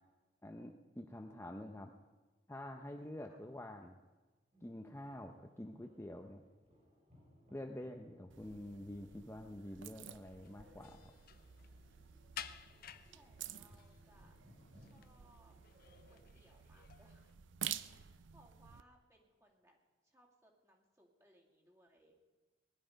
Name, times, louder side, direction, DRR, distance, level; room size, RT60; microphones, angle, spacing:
voice 1, 0.4-1.9 2.5-4.0 4.6-6.4 7.5-11.1, left 1 dB, 15° left, 3 dB, 0.7 m, -47 dB
sound 1, 4.5-16.3, equal, 40° right, 4.9 m, -66 dB
sound 2, 8.3-18.8, right 10 dB, 85° right, 0.6 m, -50 dB
sound 3, 10.2-17.3, left 9 dB, 55° left, 0.6 m, -55 dB
voice 2, 13.1-14.4 14.7-15.5 16.1-17.4 17.8-19.8 20.0-22.2, right 1 dB, 15° right, -1 dB, 2.4 m, -68 dB
20.0 x 11.0 x 5.2 m, 1.3 s
head